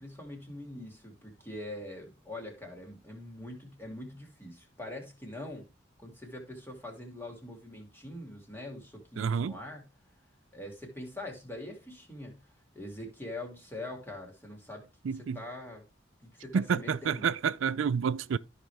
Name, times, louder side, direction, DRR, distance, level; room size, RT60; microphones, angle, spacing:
voice 1, 0.0-5.7 6.0-9.9 10.5-12.4 12.7-14.9 15.1-15.8 16.2-17.3, left 1 dB, 10° left, 2.5 m, -43 dB
voice 2, 9.2-9.6 15.0-15.4 16.5-18.4, right 6 dB, 80° right, 0.4 m, -29 dB
13.5 x 5.1 x 3.5 m
head